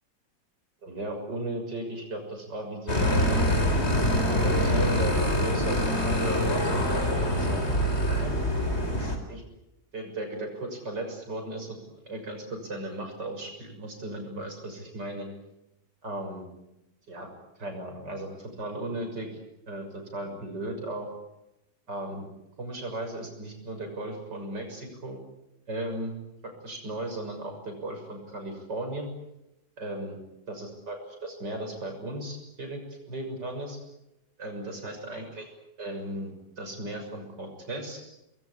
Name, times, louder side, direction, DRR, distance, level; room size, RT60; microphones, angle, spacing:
voice 1, 0.8-3.2 4.3-7.6 8.1-8.4 8.9-9.4 9.9-11.8 12.1-15.3 16.0-16.4 17.1-17.3 17.6-18.3 18.6-19.3 19.7-21.1 21.9-22.3 22.6-25.2 25.7-26.1 26.4-29.1 29.8-30.2 30.5-32.8 33.1-33.8 34.4-35.5 35.8-38.0, right 1 dB, 75° right, 4 dB, 7.2 m, -36 dB
sound 1, 2.9-9.2, equal, 35° left, 4.1 m, -25 dB
25.5 x 21.5 x 9.7 m, 0.90 s
omnidirectional pair, 1.9 m